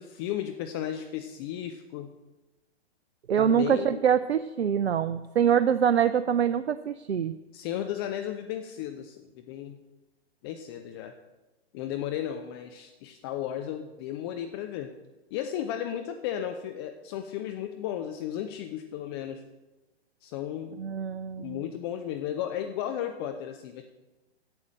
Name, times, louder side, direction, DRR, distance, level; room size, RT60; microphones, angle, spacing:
voice 1, 0.0-2.1 3.4-4.0 7.5-9.8 10.4-11.1 11.7-14.9 15.3-19.4 20.2-20.8 21.4-23.8, left 10 dB, 25° left, 7 dB, 0.5 m, -34 dB
voice 2, 3.3-7.3 20.8-21.6, right 8 dB, 75° right, 12 dB, 0.5 m, -24 dB
8.7 x 7.9 x 7.5 m, 1.1 s
figure-of-eight pair, 115°, 33 cm